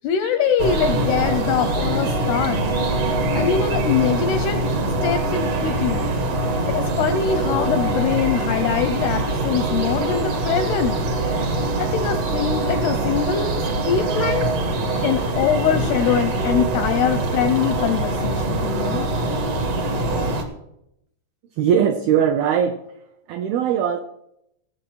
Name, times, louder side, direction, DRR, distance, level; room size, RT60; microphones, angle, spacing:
voice 1, 0.0-2.7 3.3-6.0 6.7-11.0 11.8-14.5 15.0-19.1, left 8 dB, 85° left, 9 dB, 2.3 m, -23 dB
sound 1, 0.6-20.4, right 2 dB, 55° right, 1.8 m, -23 dB
voice 2, 21.6-22.9 23.3-24.0, right 8 dB, 85° right, 6 dB, 2.1 m, -20 dB
19.5 x 7.4 x 4.6 m, 0.79 s
omnidirectional pair, 5.4 m